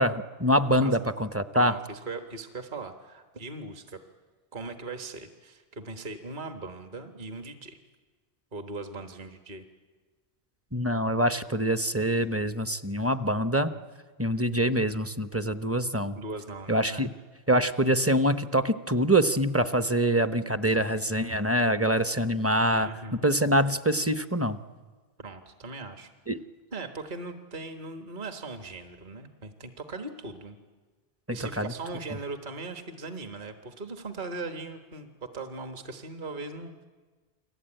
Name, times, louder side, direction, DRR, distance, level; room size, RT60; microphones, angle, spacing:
voice 1, 0.0-1.7 10.7-13.7 14.2-16.2 16.7-17.1 17.5-22.9 23.2-24.6 26.3-26.4 31.3-31.7, right 1 dB, 15° right, 10 dB, 0.7 m, -25 dB
voice 2, 1.5-4.0 4.5-7.8 8.5-9.6 16.2-17.1 22.7-23.3 25.2-26.1 26.7-30.6 31.3-36.9, right 3 dB, 45° right, 6 dB, 1.6 m, -39 dB
29.5 x 22.5 x 9.0 m, 1.4 s
omnidirectional pair, 1.1 m